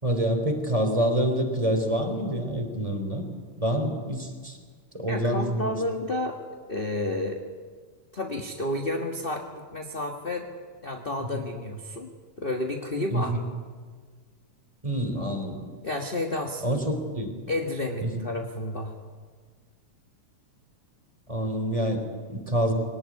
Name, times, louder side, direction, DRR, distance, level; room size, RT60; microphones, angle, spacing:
voice 1, 0.0-3.3 3.6-4.6 4.9-5.8 13.1-13.4 14.8-15.7 16.6-17.5 18.0-18.2 21.3-22.7, right 1 dB, 10° right, 4 dB, 3.0 m, -27 dB
voice 2, 5.1-6.4 6.7-7.4 8.1-10.5 10.8-12.1 12.4-13.4 15.8-16.6 17.5-18.9, left 1 dB, 30° left, 2 dB, 1.1 m, -31 dB
22.5 x 18.5 x 9.7 m, 1.5 s
omnidirectional pair, 3.3 m